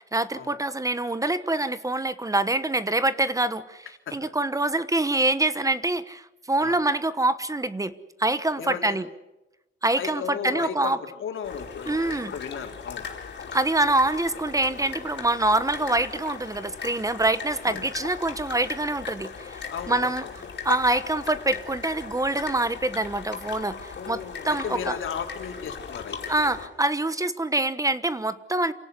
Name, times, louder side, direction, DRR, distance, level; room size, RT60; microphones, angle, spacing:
voice 1, 0.0-3.9 4.1-9.1 9.8-11.0 11.9-12.3 13.5-20.2 20.6-25.0 26.3-28.7, right 2 dB, 15° right, 14 dB, 1.1 m, -25 dB
voice 2, 8.6-9.0 10.0-13.1 17.7-17.9 19.7-20.3 23.9-26.3, left 7 dB, 90° left, 3 dB, 3.6 m, -35 dB
sound 1, 11.4-26.7, left 6 dB, 60° left, 5.1 m, -38 dB
28.0 x 18.0 x 9.7 m, 0.96 s
wide cardioid pair, 125°, 20 cm